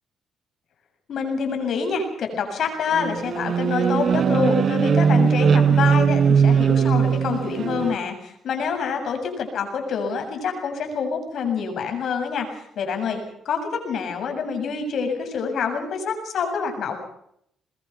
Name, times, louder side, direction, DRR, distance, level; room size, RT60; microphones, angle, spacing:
voice 1, 1.1-17.0, left 5 dB, 65° left, 5 dB, 7.2 m, -26 dB
sound 1, 2.9-8.0, right 6 dB, 55° right, 1.1 m, -19 dB
22.0 x 21.0 x 6.0 m, 0.71 s
cardioid pair, 90°, 0 cm